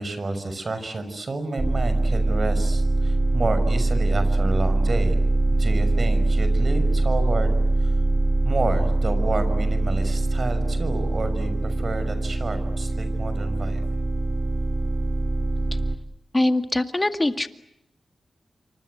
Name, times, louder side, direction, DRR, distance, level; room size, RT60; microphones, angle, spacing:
voice 1, 0.0-5.2 5.5-7.5 8.4-13.8, right 2 dB, 50° right, 10 dB, 6.1 m, -30 dB
sound 1, 1.6-16.0, right 2 dB, 35° right, 2.6 m, -23 dB
voice 2, 16.3-17.5, left 1 dB, 25° left, 8 dB, 2.1 m, -22 dB
28.5 x 25.0 x 8.0 m, 0.84 s
cardioid pair, 60°, 0 cm